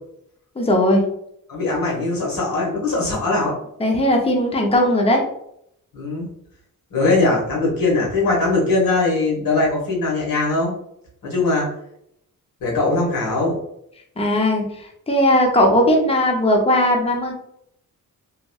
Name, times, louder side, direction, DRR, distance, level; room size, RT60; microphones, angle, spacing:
voice 1, 0.6-1.0 3.8-5.2 14.2-14.6 15.1-17.3, left 1 dB, 20° left, 1 dB, 0.5 m, -17 dB
voice 2, 1.5-3.5 5.9-6.3 6.9-10.7 11.2-11.7 12.6-13.6, left 2 dB, 80° left, -3 dB, 1.3 m, -20 dB
2.9 x 2.6 x 2.3 m, 0.73 s
wide cardioid pair, 110°, 34 cm